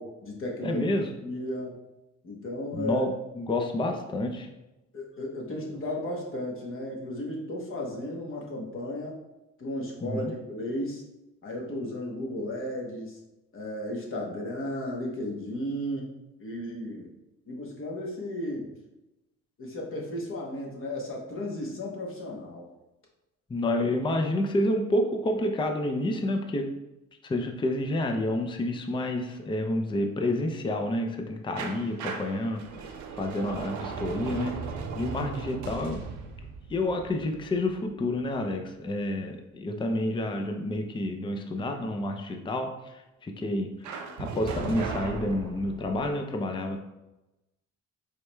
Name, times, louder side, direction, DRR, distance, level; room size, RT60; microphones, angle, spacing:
voice 1, 0.0-1.8 2.2-3.1 4.9-9.2 9.6-11.0 11.4-13.2 13.5-16.1 16.4-17.1 17.5-18.7 19.6-22.7, left 1 dB, 45° left, -1 dB, 1.0 m, -34 dB
voice 2, 0.6-1.1 2.7-3.1 3.4-4.5 10.0-10.3 23.5-26.7 27.2-32.6 33.2-34.6 34.9-36.0 36.7-46.8, left 1 dB, 15° left, 4 dB, 0.4 m, -29 dB
sound 1, 31.6-38.3 43.8-46.1, right 5 dB, 70° right, 0.6 m, -37 dB
4.6 x 3.2 x 2.2 m, 0.96 s
cardioid pair, 90°, 30 cm